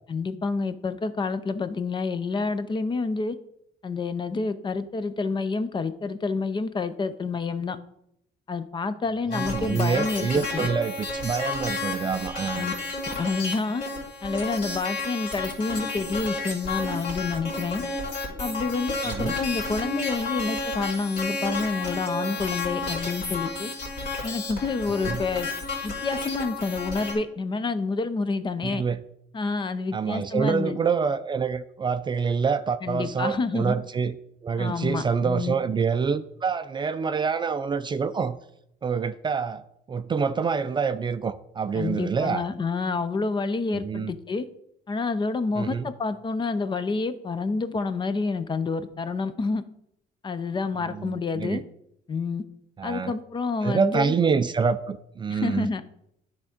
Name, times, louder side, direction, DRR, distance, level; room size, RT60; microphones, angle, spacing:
voice 1, 0.1-3.4 3.8-7.8 8.5-10.7 12.6-12.7 13.1-13.8 14.2-17.8 18.4-23.7 24.2-25.5 25.8-28.8 29.3-30.8 32.8-33.8 34.6-35.5 41.7-44.5 44.9-49.6 50.2-51.6 52.1-52.4 52.8-54.1 55.3-55.8, left 4 dB, 30° left, 12 dB, 0.6 m, -28 dB
sound 1, 9.3-27.1, left 3 dB, 60° left, 2.9 m, -32 dB
voice 2, 9.3-12.7 19.1-19.4 25.0-25.2 28.6-29.0 29.9-34.1 34.4-38.4 38.8-39.6 39.9-42.4 43.7-44.1 45.6-45.9 50.9-51.6 52.8-53.1 53.6-55.7, right 5 dB, 30° right, 11 dB, 0.4 m, -26 dB
10.0 x 3.6 x 5.1 m, 0.76 s
cardioid pair, 110°, 17 cm